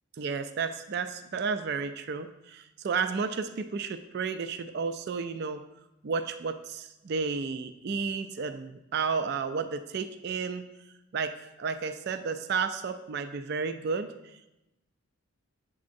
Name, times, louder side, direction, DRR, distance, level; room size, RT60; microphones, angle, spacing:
voice 1, 0.2-5.6 6.0-10.6 11.1-14.5, right 5 dB, 50° right, 10 dB, 0.3 m, -32 dB
8.4 x 7.2 x 2.6 m, 0.93 s
head